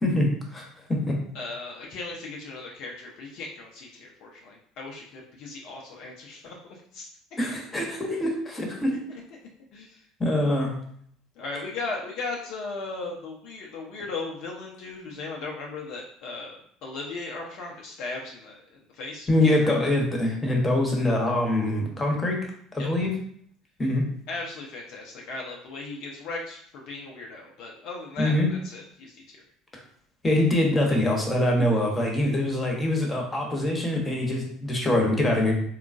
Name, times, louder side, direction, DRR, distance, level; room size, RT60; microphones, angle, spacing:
voice 1, 0.0-1.2 7.4-9.0 10.2-10.7 19.3-22.4 22.7-23.1 23.8-24.0 28.2-28.5 30.2-35.6, left 1 dB, 20° left, 0 dB, 1.0 m, -24 dB
voice 2, 1.3-7.1 7.7-7.8 9.7-10.0 10.3-10.7 11.4-18.6 18.9-19.7 22.8-22.9 24.3-29.4, left 3 dB, 60° left, -1 dB, 0.6 m, -37 dB
3.6 x 2.3 x 2.5 m, 0.62 s
hypercardioid pair, 70°, 0 cm